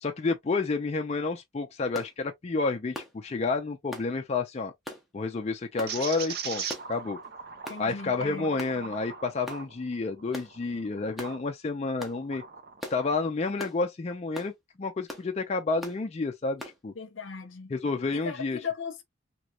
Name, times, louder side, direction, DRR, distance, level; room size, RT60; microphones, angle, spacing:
voice 1, 0.0-4.7 5.1-7.2 7.8-12.4 12.9-16.9 17.7-18.6, left 3 dB, 30° left, 0.4 m, -30 dB
sound 1, 1.9-2.1 2.9-3.2 3.9-4.1 4.9-5.0 5.8-6.0 6.7-7.0 7.7-7.8 8.6-8.8 9.5-9.7 10.3-10.5 11.2-11.4 12.0-12.2 12.8-13.0 13.6-13.8 14.3-14.5 15.1-15.3 15.8-16.0 16.6-16.8, left 1 dB, ahead, 0.7 m, -40 dB
sound 2, 5.9-11.4 11.9-13.1, right 6 dB, 50° right, 0.7 m, -40 dB
voice 2, 7.7-8.5 17.0-17.7 18.1-19.0, left 5 dB, 70° left, 0.7 m, -37 dB
3.0 x 3.0 x 2.3 m
head